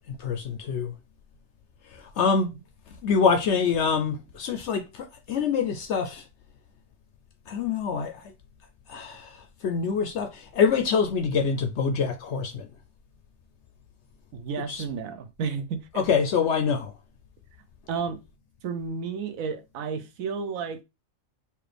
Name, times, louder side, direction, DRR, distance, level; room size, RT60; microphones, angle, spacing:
voice 1, 0.1-1.0 1.8-2.5 2.9-6.3 7.5-8.3 8.9-12.7 14.7-14.8 15.9-16.9, left 6 dB, 65° left, 0.7 m, -26 dB
voice 2, 14.3-16.0 17.9-18.2 18.6-20.8, right 5 dB, 70° right, 1.1 m, -32 dB
4.4 x 2.5 x 3.3 m
omnidirectional pair, 1.5 m